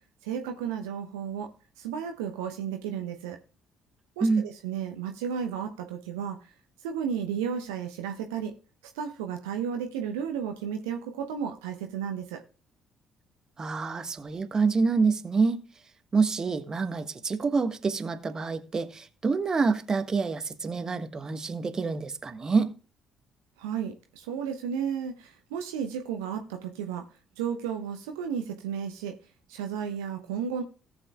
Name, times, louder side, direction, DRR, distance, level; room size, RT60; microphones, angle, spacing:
voice 1, 0.2-1.5 1.8-3.4 4.2-6.4 6.8-8.5 8.9-12.4 23.6-27.1 27.4-29.1 29.5-30.6, right 7 dB, 70° right, 0.8 m, -33 dB
voice 2, 13.6-15.6 16.1-22.7, right 4 dB, 30° right, 1.3 m, -27 dB
18.0 x 7.2 x 2.3 m
figure-of-eight pair, 45°, 2 cm